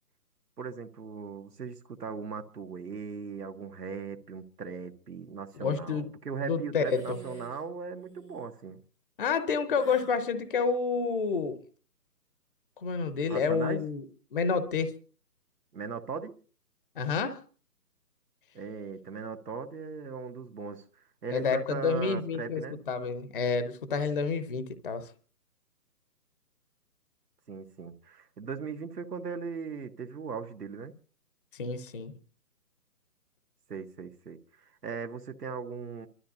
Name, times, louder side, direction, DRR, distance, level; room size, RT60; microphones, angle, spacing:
voice 1, 0.6-8.8 13.3-13.8 15.7-16.4 18.5-20.8 21.2-22.8 27.5-30.9 33.7-36.1, right 5 dB, 75° right, 1.5 m, -38 dB
voice 2, 5.6-6.0 6.4-7.2 9.2-11.6 12.8-14.0 14.3-14.9 17.0-17.4 21.3-22.6 22.9-25.1 31.5-32.1, left 5 dB, 35° left, 0.8 m, -29 dB
eh hmm ha sr, 6.8-7.6 7.9-8.5 9.7-10.2, right 3 dB, ahead, 0.6 m, -48 dB
30.0 x 13.0 x 2.8 m
hypercardioid pair, 155°, 47 cm